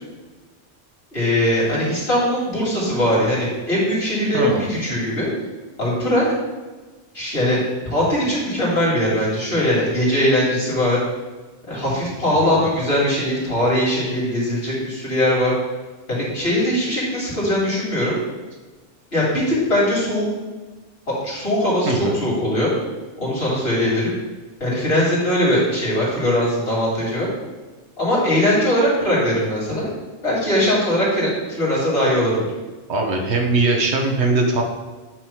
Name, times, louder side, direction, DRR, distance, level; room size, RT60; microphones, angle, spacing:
voice 1, 1.1-5.3 5.8-6.2 7.1-7.6 7.9-11.0 11.7-15.5 16.1-18.2 19.1-20.2 21.2-22.7 23.2-24.1 24.6-27.3 28.0-29.9 30.2-32.5, left 1 dB, 60° left, -6 dB, 3.0 m, -20 dB
voice 2, 4.3-4.7 12.4-12.6 21.9-22.2 32.9-34.6, right 3 dB, 70° right, 2 dB, 1.3 m, -20 dB
8.6 x 3.1 x 5.8 m, 1.3 s
omnidirectional pair, 1.2 m